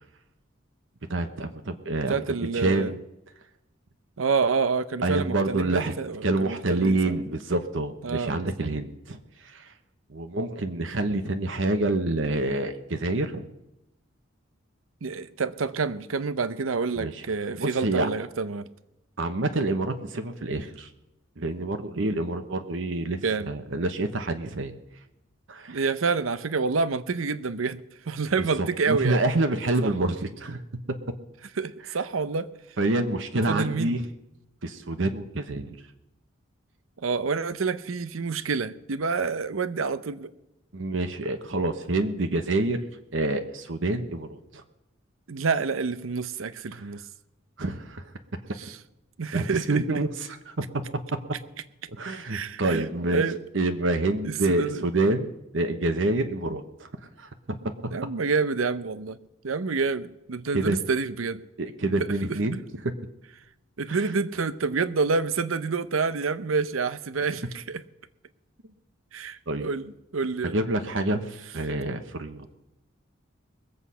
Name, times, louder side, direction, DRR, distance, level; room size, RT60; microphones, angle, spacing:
voice 1, 1.1-2.2 2.5-3.0 5.0-5.9 6.2-9.7 10.1-13.5 16.9-17.2 17.6-18.1 19.2-20.9 21.4-23.2 23.5-24.7 25.5-25.8 28.6-30.6 32.8-34.0 34.6-35.8 40.7-42.8 43.1-44.6 47.6-48.1 49.3-50.8 51.9-53.2 53.5-56.9 57.2-57.9 60.5-60.8 61.6-63.0 63.9-64.1 69.5-69.7 70.5-72.5, right 2 dB, 65° right, 1.0 m, -27 dB
voice 2, 2.1-2.9 4.2-7.2 8.0-8.7 15.0-18.7 23.2-23.5 25.7-27.8 28.1-29.2 29.8-29.9 31.6-32.5 33.5-34.0 37.0-40.3 45.3-47.0 48.6-48.8 49.2-49.8 52.3-53.4 54.2-54.8 56.5-56.6 57.9-59.2 59.4-61.4 62.0-62.4 63.8-67.8 69.1-70.6, right 4 dB, 85° right, 0.7 m, -28 dB
21.0 x 8.0 x 5.6 m
head